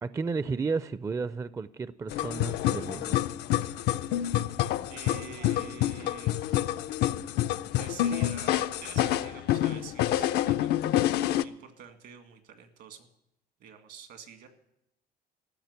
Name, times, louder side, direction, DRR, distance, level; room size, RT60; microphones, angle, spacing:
voice 1, 0.0-3.3, right 4 dB, 20° right, 0.4 m, -33 dB
sound 1, 2.1-11.4, left 13 dB, 75° left, 0.5 m, -28 dB
voice 2, 4.9-6.6 7.8-13.1 13.6-14.5, right 7 dB, 75° right, 2.0 m, -48 dB
15.0 x 6.4 x 9.5 m
cardioid pair, 110°, 17 cm